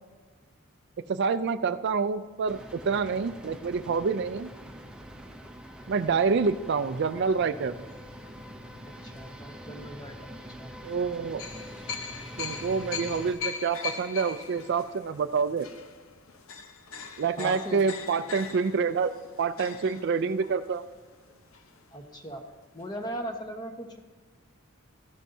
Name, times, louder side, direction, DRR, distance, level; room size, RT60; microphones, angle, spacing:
voice 1, 1.1-4.5 5.9-7.8 10.8-11.4 12.4-15.7 17.2-19.1 19.4-20.9, right 5 dB, 55° right, 12 dB, 0.4 m, -27 dB
sound 1, 2.5-13.3, equal, 5° right, 0.6 m, -44 dB
sound 2, 6.0-8.4 9.0-9.2 11.4-22.1 22.4-22.5 22.8-23.0, left 6 dB, 75° left, 0.8 m, -41 dB
voice 2, 8.9-10.7 17.4-17.9 21.9-22.4 22.7-24.0, equal, 20° left, 4 dB, 1.1 m, -38 dB
14.0 x 12.0 x 2.7 m, 1.4 s
head